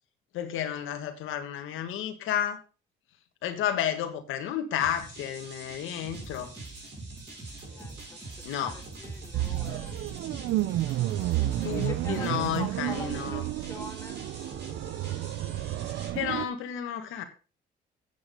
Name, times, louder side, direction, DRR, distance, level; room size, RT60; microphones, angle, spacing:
voice 1, 0.3-2.6 3.4-6.5 8.4-8.7 9.7-9.8 11.6-13.4 16.1-17.2, left 10 dB, 90° left, 6 dB, 1.6 m, -31 dB
sound 1, 4.8-16.1, right 2 dB, 60° right, 6.0 m, -46 dB
sound 2, 6.1-12.7, right 3 dB, 15° right, 4.7 m, -45 dB
voice 2, 7.6-10.0 11.4-14.2, left 2 dB, 15° left, 1 dB, 3.0 m, -44 dB
sound 3, 9.3-16.5, right 15 dB, 85° right, 0.6 m, -31 dB
8.5 x 8.4 x 5.3 m, 0.34 s
cardioid pair, 90°, 20 cm